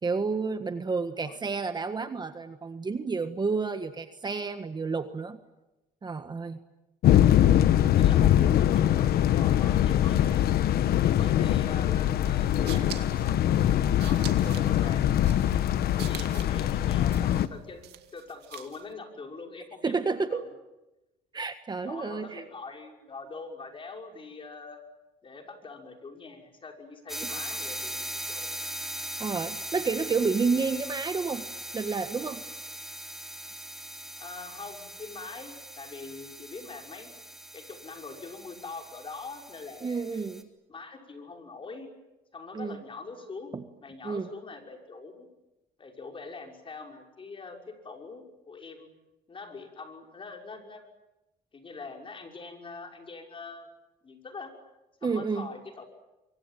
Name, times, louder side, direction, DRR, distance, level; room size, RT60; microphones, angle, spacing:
voice 1, 0.0-5.4 6.0-6.6 19.8-20.4 21.3-22.4 27.2-27.3 29.2-31.4 31.7-32.4 39.8-40.5 42.5-42.8 43.5-43.6 44.0-44.3 55.0-55.5, right 4 dB, 25° right, 9 dB, 1.6 m, -30 dB
sound 1, 7.0-17.5, left 11 dB, 65° left, 1.3 m, -23 dB
voice 2, 8.0-10.5 11.0-15.1 16.0-17.8 18.1-20.5 21.8-24.8 25.2-28.5 34.2-37.1 37.5-40.2 40.7-41.9 42.3-43.5 43.8-45.3 45.8-48.9 49.3-50.9 51.5-53.7 54.0-54.5 55.0-55.8, left 4 dB, 30° left, 3 dB, 6.0 m, -43 dB
sound 2, 12.3-18.9, right 13 dB, 80° right, 2.1 m, -46 dB
sound 3, 27.1-40.4, right 1 dB, ahead, 3.0 m, -40 dB
24.5 x 24.5 x 9.2 m, 0.98 s
cardioid pair, 110°, 17 cm